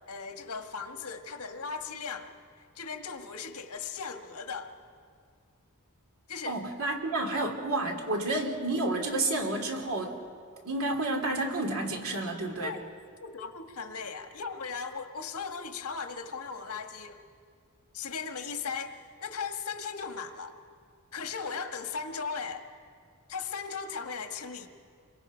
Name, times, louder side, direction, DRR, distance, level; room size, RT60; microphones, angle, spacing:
voice 1, 0.1-4.7 6.3-6.6 12.6-12.8 13.2-17.2 17.9-20.6 21.1-22.7 23.3-24.7, left 5 dB, 80° left, 6 dB, 1.5 m, -37 dB
voice 2, 6.4-10.1 10.6-12.7, right 2 dB, 65° right, 2 dB, 2.9 m, -30 dB
28.5 x 23.0 x 5.1 m, 2.2 s
head